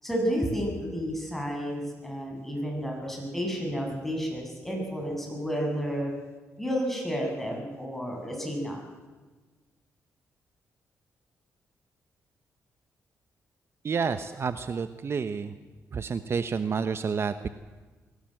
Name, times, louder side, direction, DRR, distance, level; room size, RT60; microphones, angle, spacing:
voice 1, 0.0-6.1 6.6-8.8, equal, 5° left, 0 dB, 7.3 m, -31 dB
voice 2, 13.8-15.5 15.9-17.5, right 5 dB, 50° right, 11 dB, 0.9 m, -29 dB
23.0 x 16.5 x 7.8 m, 1.3 s
cardioid pair, 85°, 6 cm